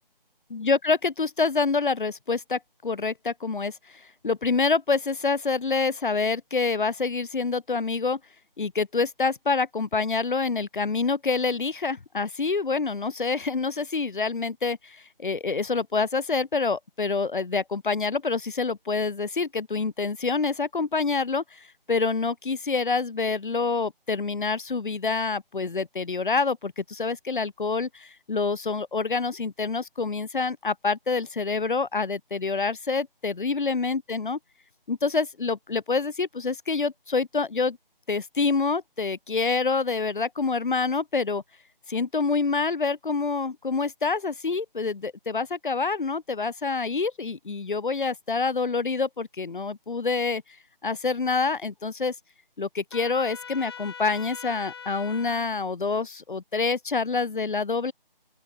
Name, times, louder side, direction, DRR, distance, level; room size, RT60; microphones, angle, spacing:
voice 1, 0.5-8.2 8.6-34.4 34.9-37.8 38.1-41.4 41.9-50.4 50.8-52.1 52.6-57.9, left 4 dB, 60° left, 0.9 m, -27 dB
Trumpet, 52.9-55.4, left 6 dB, 25° left, 2.0 m, -41 dB
open air
figure-of-eight pair, 160°, 29 cm